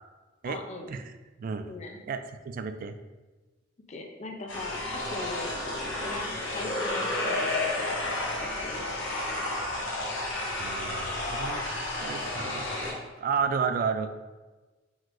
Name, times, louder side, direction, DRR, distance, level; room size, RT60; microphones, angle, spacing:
voice 1, 0.4-0.9 1.7-2.0 3.9-5.6 6.0-8.9, left 2 dB, 35° left, 3 dB, 0.5 m, -41 dB
voice 2, 1.4-1.7 2.1-2.2 2.5-3.0 10.6-11.7 12.0-14.1, right 6 dB, 45° right, 9 dB, 0.3 m, -32 dB
sound 1, 4.5-12.9, left 2 dB, 70° left, 1.0 m, -31 dB
5.0 x 3.8 x 2.5 m, 1.2 s
head